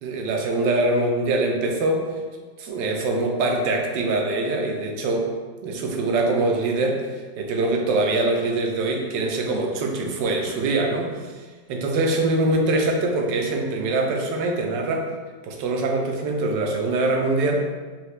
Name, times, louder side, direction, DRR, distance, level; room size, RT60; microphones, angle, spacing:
voice 1, 0.0-2.1 2.6-5.3 5.6-11.1 11.7-15.1 15.4-17.6, right 2 dB, 85° right, 2 dB, 1.3 m, -23 dB
4.6 x 2.8 x 3.1 m, 1.4 s
omnidirectional pair, 1.9 m